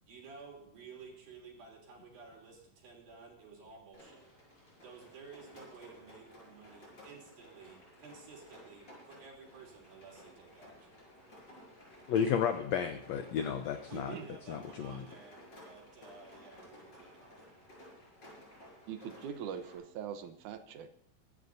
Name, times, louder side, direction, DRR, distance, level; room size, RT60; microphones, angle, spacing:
voice 1, 0.0-4.3 4.8-11.0 13.9-17.4, right 5 dB, 90° right, -1 dB, 5.1 m, -53 dB
Rain, 3.9-19.8, equal, 30° left, 6.6 m, -56 dB
voice 2, 12.1-14.1 14.5-15.0, left 8 dB, 80° left, 7 dB, 1.5 m, -32 dB
voice 3, 18.9-20.9, right 8 dB, 70° right, 8 dB, 2.2 m, -42 dB
23.5 x 12.5 x 2.7 m, 0.68 s
omnidirectional pair, 4.0 m